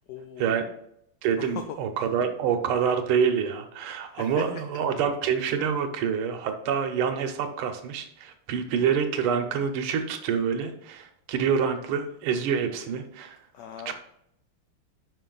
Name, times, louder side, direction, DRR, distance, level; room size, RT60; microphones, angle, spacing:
voice 1, 0.1-0.7 1.4-1.8 4.0-4.6 5.4-5.5 13.5-13.9, left 8 dB, 90° left, 7 dB, 0.9 m, -40 dB
voice 2, 1.2-13.4 13.9-14.0, right 7 dB, 75° right, 6 dB, 1.7 m, -27 dB
5.2 x 5.2 x 3.8 m, 0.72 s
omnidirectional pair, 2.4 m